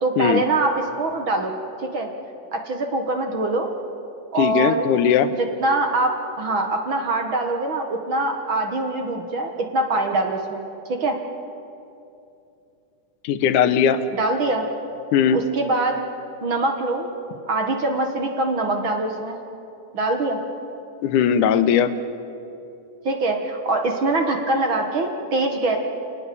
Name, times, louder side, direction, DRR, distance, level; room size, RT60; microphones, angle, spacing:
voice 1, 0.0-1.5 1.9-2.1 2.5-3.7 4.3-4.9 5.6-6.1 6.4-10.6 10.9-11.2 14.1-14.6 15.3-16.0 16.4-17.1 17.5-19.4 19.9-20.4 23.1-25.8, right 2 dB, 45° right, 3 dB, 2.0 m, -23 dB
voice 2, 4.4-5.3 13.2-14.0 15.1-15.4 21.0-21.9, left 8 dB, 85° left, 11 dB, 2.4 m, -18 dB
28.5 x 19.0 x 7.0 m, 2.7 s
omnidirectional pair, 3.6 m